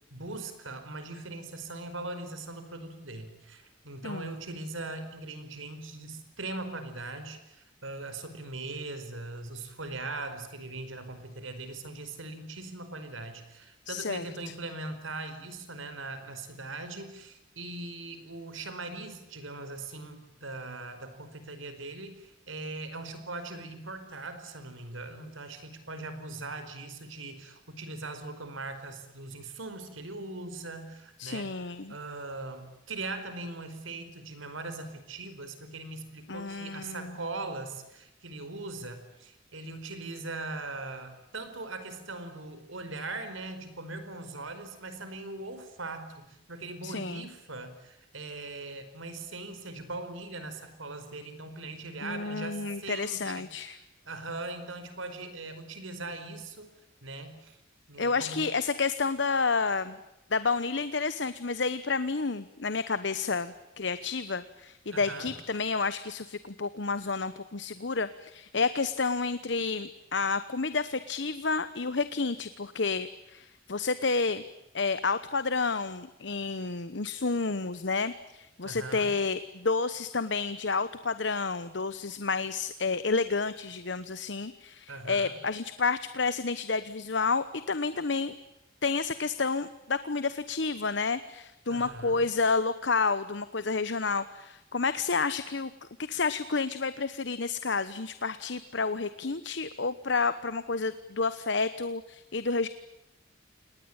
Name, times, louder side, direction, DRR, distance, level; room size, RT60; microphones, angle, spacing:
voice 1, 0.1-53.5 54.0-56.7 57.0-57.6 57.9-58.4 64.9-65.3 78.6-79.1 84.9-85.3 91.7-92.2, right 2 dB, 90° right, 10 dB, 4.7 m, -40 dB
voice 2, 13.9-14.3 31.2-31.9 36.3-37.1 46.8-47.2 52.0-53.8 58.0-60.0 60.3-74.4 74.7-88.3 88.8-95.7 96.0-102.7, left 4 dB, 60° left, 13 dB, 1.0 m, -30 dB
29.0 x 19.5 x 8.9 m, 0.91 s
head